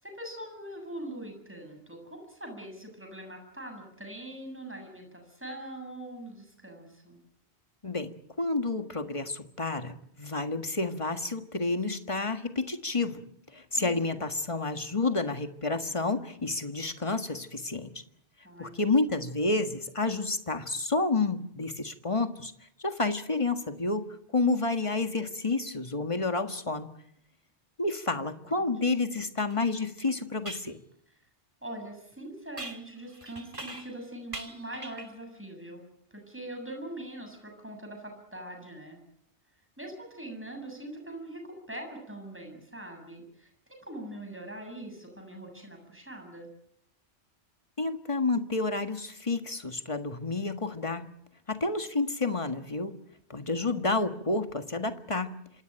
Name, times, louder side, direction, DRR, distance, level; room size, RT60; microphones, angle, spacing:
voice 1, 0.0-7.2 13.7-14.3 18.4-18.9 28.3-28.7 31.6-39.0 39.8-46.5, right 1 dB, 10° right, 3 dB, 7.3 m, -42 dB
voice 2, 7.8-13.2 13.5-17.9 18.6-22.5 22.8-24.1 24.3-26.9 27.8-30.8 47.8-51.1 51.5-53.0 53.3-55.6, left 3 dB, 30° left, 7 dB, 1.7 m, -30 dB
sound 1, 29.5-29.6 30.4-30.7 32.6-34.0 34.3-35.2, right 2 dB, 30° right, 2.2 m, -42 dB
26.5 x 18.0 x 9.1 m, 0.75 s
omnidirectional pair, 1.1 m